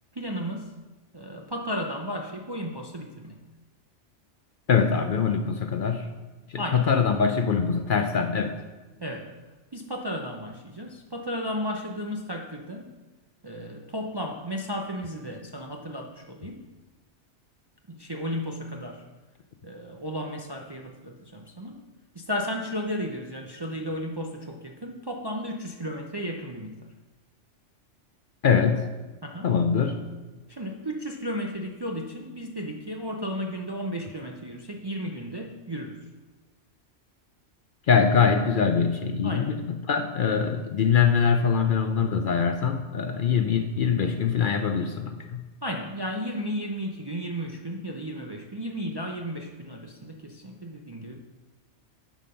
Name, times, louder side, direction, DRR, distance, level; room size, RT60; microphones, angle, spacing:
voice 1, 0.1-0.7 1.1-3.4 6.6-6.9 9.0-9.3 9.7-12.9 13.4-16.6 17.9-19.0 19.6-21.8 22.1-26.9 29.2-29.5 30.5-36.0 39.2-39.6 45.6-51.2, equal, 30° right, 1 dB, 0.5 m, -34 dB
voice 2, 4.7-6.1 6.5-8.6 28.4-28.9 29.4-30.0 37.9-45.4, left 6 dB, 55° left, 6 dB, 0.6 m, -23 dB
9.1 x 5.1 x 5.6 m, 1.2 s
omnidirectional pair, 1.2 m